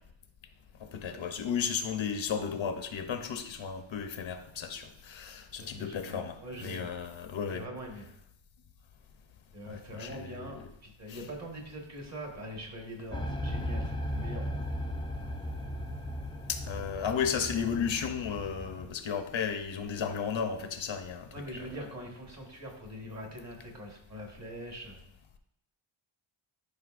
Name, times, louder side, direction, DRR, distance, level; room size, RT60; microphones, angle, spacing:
voice 1, 0.8-7.6 9.7-10.5 11.1-11.2 16.5-21.3, left 7 dB, 65° left, 7 dB, 0.8 m, -34 dB
voice 2, 5.6-6.9 7.5-8.1 9.5-14.7 21.3-25.0, equal, 30° right, 1 dB, 1.5 m, -43 dB
sound 1, 13.1-18.9, equal, 10° left, 0.4 m, -36 dB
11.5 x 5.4 x 2.5 m, 0.78 s
wide cardioid pair, 175°, 50 cm